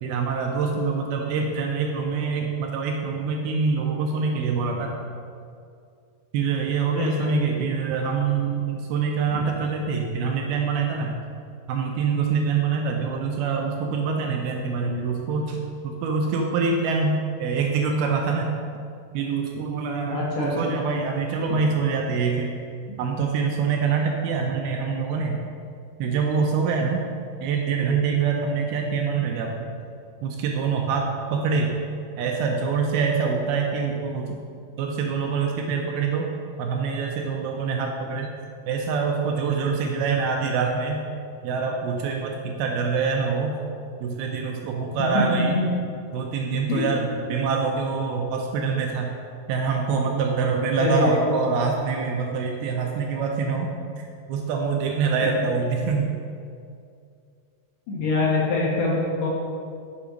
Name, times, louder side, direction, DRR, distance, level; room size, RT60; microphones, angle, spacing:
voice 1, 0.0-4.9 6.3-11.2 11.7-18.5 19.1-22.6 23.0-25.4 26.0-27.1 27.4-29.7 30.2-31.7 32.2-34.4 34.8-36.3 36.6-38.3 38.7-41.0 41.4-43.6 44.0-45.6 46.1-49.2 49.5-56.1, right 5 dB, 80° right, 1 dB, 2.3 m, -25 dB
voice 2, 7.0-7.3 9.3-9.4 20.1-20.7 21.5-21.6 45.1-45.7 46.7-46.9 50.8-51.2 55.2-55.3 57.9-59.3, left 2 dB, 65° left, -4 dB, 2.4 m, -24 dB
7.0 x 5.3 x 5.0 m, 2.4 s
omnidirectional pair, 4.8 m